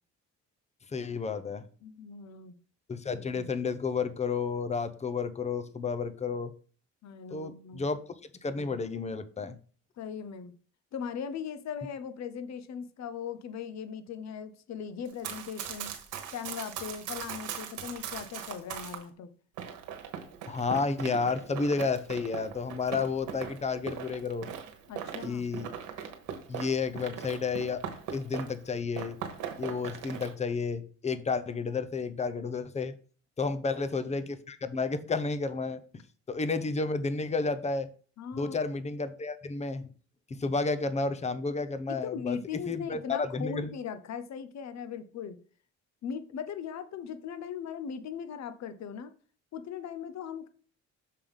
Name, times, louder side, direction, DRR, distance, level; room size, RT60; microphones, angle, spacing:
voice 1, 0.9-1.6 2.9-6.5 7.3-8.0 8.4-9.5 20.5-24.5 25.2-25.7 26.5-27.8 28.1-29.2 29.6-32.9 33.4-35.8 36.3-37.9 38.3-39.8 40.3-42.4 42.7-43.7, left 4 dB, 20° left, 0.7 m, -31 dB
voice 2, 1.8-2.5 7.0-7.9 10.0-10.5 10.9-15.9 16.3-19.3 24.9-25.4 33.4-33.6 38.2-38.5 41.9-45.4 46.0-49.1 49.5-50.5, left 7 dB, 65° left, 0.8 m, -39 dB
Run, 15.1-19.0 19.6-28.7 28.9-30.3, right 8 dB, 90° right, 1.2 m, -40 dB
6.6 x 3.6 x 5.4 m
cardioid pair, 90°, 30 cm